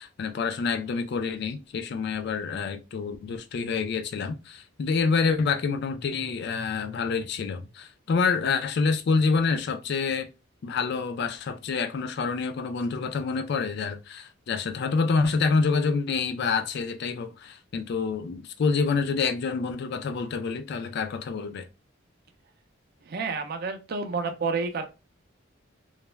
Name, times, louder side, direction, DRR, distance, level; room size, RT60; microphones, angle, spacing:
voice 1, 0.0-10.3 10.6-21.7, left 4 dB, 55° left, 0.3 m, -27 dB
voice 2, 23.1-24.8, right 4 dB, 50° right, 0.4 m, -29 dB
2.3 x 2.1 x 3.1 m
head